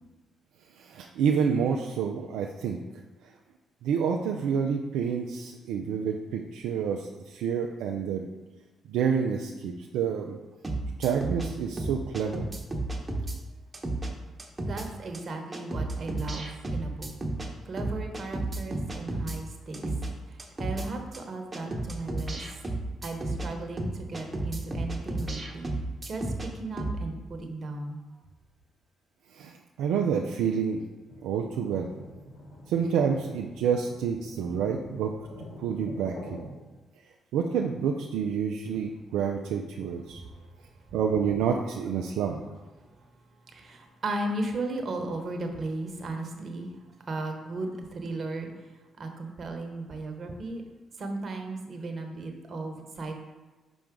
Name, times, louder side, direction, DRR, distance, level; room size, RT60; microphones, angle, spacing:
voice 1, 0.9-2.8 3.8-8.2 8.9-10.4 11.0-12.4 29.4-29.5 29.8-30.8 31.2-31.9 32.7-35.1 35.6-36.5 37.3-40.2 40.9-42.4, right 7 dB, 80° right, 1 dB, 0.4 m, -28 dB
sound 1, 10.6-11.5 11.8-13.4 13.7-14.1 14.4-14.9 15.1-15.2 15.5-17.5 17.8-19.4 19.7-20.1 20.4-20.9 21.1-21.2 21.5-23.5 23.8-26.5 26.8-27.0, right 2 dB, 30° right, 1.1 m, -32 dB
voice 2, 14.7-17.1 17.7-19.8 20.6-22.5 23.0-25.7 26.1-26.3 26.5-28.0 43.5-46.7 47.1-48.5 49.0-50.6 51.0-53.1, right 2 dB, 50° right, 3 dB, 1.2 m, -35 dB
sound 2, 31.1-36.4, equal, 70° left, 1.6 m, -46 dB
5.8 x 5.0 x 3.7 m, 1.2 s
hypercardioid pair, 50°, 0 cm